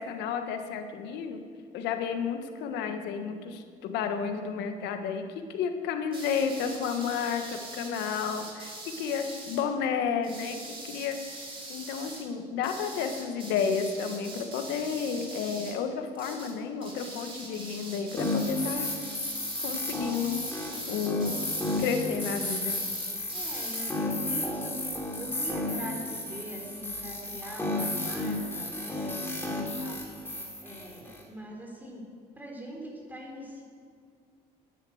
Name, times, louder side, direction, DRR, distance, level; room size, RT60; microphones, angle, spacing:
voice 1, 0.0-1.4 1.7-5.2 5.5-10.6 10.9-11.2 11.7-18.9 19.6-20.4 20.9-21.4 21.8-22.8, left 6 dB, 90° left, 6 dB, 1.4 m, -31 dB
sound 1, 6.1-9.6 10.2-12.2 12.6-15.8 16.1-16.5 16.8-23.8, right 2 dB, 30° right, 3.1 m, -43 dB
sound 2, 18.2-31.2, left 2 dB, 15° left, 3.1 m, -33 dB
voice 2, 23.3-30.0 30.6-32.1 32.4-33.6, equal, 10° right, -1 dB, 3.7 m, -42 dB
11.0 x 10.5 x 7.8 m, 2.2 s
cardioid pair, 110°, 17 cm